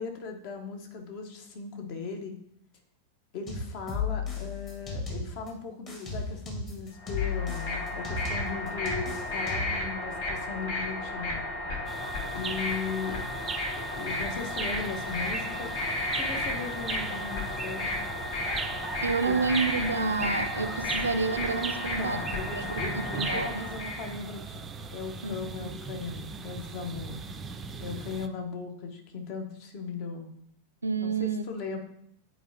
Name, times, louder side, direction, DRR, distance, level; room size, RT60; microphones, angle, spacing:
voice 1, 0.0-2.4 3.3-11.4 12.3-13.2 13.8-15.7 16.1-17.9 19.2-19.4 22.0-24.6 24.9-27.2 27.8-30.3 31.0-31.8, left 4 dB, 45° left, 4 dB, 1.1 m, -38 dB
sound 1, 3.5-5.5 5.9-9.9, left 5 dB, 30° left, 1.5 m, -34 dB
sound 2, 7.0-24.1, left 2 dB, 65° left, 2.3 m, -33 dB
sound 3, 11.9-28.3, right 5 dB, 20° right, 0.5 m, -39 dB
voice 2, 19.0-22.2 22.5-23.7 25.2-25.7 30.8-31.4, right 4 dB, 75° right, 10 dB, 0.4 m, -29 dB
9.1 x 4.4 x 2.8 m, 0.73 s
figure-of-eight pair, 90°, 0 cm